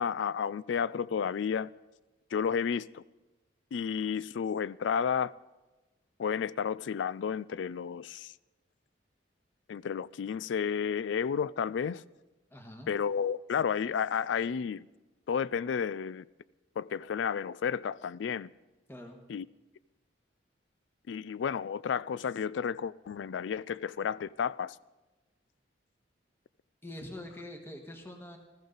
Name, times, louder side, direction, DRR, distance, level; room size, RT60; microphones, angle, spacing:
voice 1, 0.0-1.7 2.3-3.0 3.7-5.3 6.2-8.3 9.7-12.0 12.9-14.9 15.3-16.2 16.8-18.5 19.3-19.5 21.1-24.8, left 7 dB, 80° left, 0.4 m, -32 dB
voice 2, 12.5-12.9 18.9-19.2 26.8-28.4, left 1 dB, 15° left, 1.4 m, -44 dB
20.0 x 14.0 x 4.0 m
head